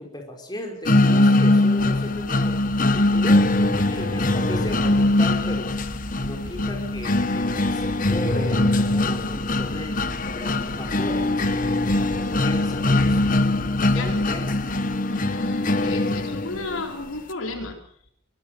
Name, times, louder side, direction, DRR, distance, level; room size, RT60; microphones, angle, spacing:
voice 1, 0.0-2.6 2.9-5.8 6.2-13.4 13.8-14.7, left 1 dB, 20° left, 2 dB, 5.2 m, -36 dB
sound 1, 0.9-16.8, left 2 dB, 40° left, 1.3 m, -22 dB
sound 2, 1.8-15.0, equal, 75° right, 3.2 m, -40 dB
voice 2, 15.1-17.8, left 2 dB, 75° left, 4 dB, 4.1 m, -33 dB
23.5 x 20.0 x 6.8 m, 0.66 s
head